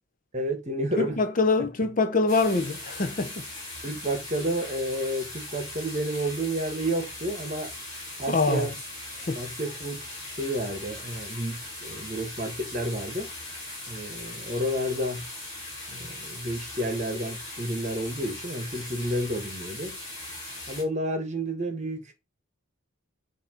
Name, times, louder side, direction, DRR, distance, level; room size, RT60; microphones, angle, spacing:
voice 1, 0.3-1.2 3.8-7.7 8.2-8.7 9.3-10.1 10.4-13.3 13.9-15.2 15.9-19.9 20.7-22.1, right 1 dB, 35° right, 1.3 m, -30 dB
voice 2, 1.0-3.3 8.3-8.7 9.3-9.4, left 3 dB, 40° left, 0.6 m, -24 dB
sound 1, 2.3-20.8, left 1 dB, 20° left, 3.0 m, -39 dB
6.9 x 2.8 x 5.0 m
head